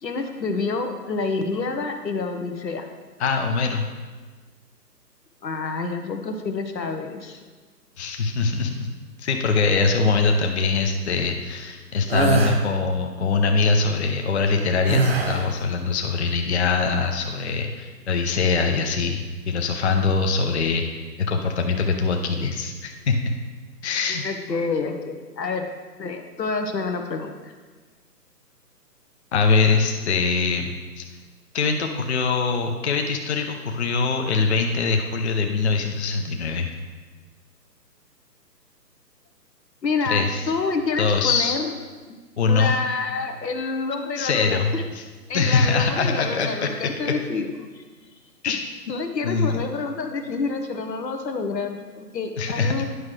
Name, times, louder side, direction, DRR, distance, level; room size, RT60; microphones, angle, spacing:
voice 1, 0.0-2.9 5.4-7.4 24.1-25.7 26.0-27.5 39.8-41.7 42.1-42.2 42.5-44.8 45.3-47.5 47.8-47.9 48.9-52.9, left 4 dB, 80° left, 6 dB, 1.1 m, -28 dB
voice 2, 3.2-3.9 8.0-8.9 9.2-20.8 21.2-23.3 23.8-24.2 29.3-30.7 31.0-31.1 31.5-36.7 40.0-40.5 41.0-41.6 42.4-42.7 44.2-44.7 45.3-46.7 47.0-47.1 48.4-48.6 49.2-49.6 52.4-52.9, left 4 dB, 45° left, 4 dB, 0.6 m, -23 dB
sound 1, 12.1-12.6 14.9-15.6, right 3 dB, 40° right, 0.6 m, -21 dB
9.5 x 6.1 x 3.2 m, 1.4 s
figure-of-eight pair, 150°, 50 cm